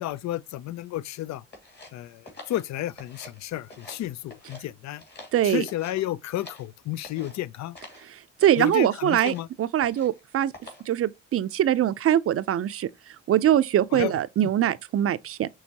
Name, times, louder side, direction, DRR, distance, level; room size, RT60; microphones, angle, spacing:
voice 1, 0.0-1.4 1.9-5.0 5.4-7.8 8.6-9.5 13.9-14.2, left 14 dB, 65° left, 0.4 m, -32 dB
sound 1, 1.5-3.4 3.7-4.6 5.0-6.7 7.0-7.4 7.7-8.1 8.4-8.7 9.1-9.5 9.8-10.2 10.5-10.9, left 2 dB, 35° left, 2.5 m, -46 dB
voice 2, 5.3-5.6 8.4-10.5 10.9-12.9 13.3-15.5, right 11 dB, 50° right, 0.5 m, -23 dB
6.3 x 3.0 x 2.7 m
cardioid pair, 90°, 30 cm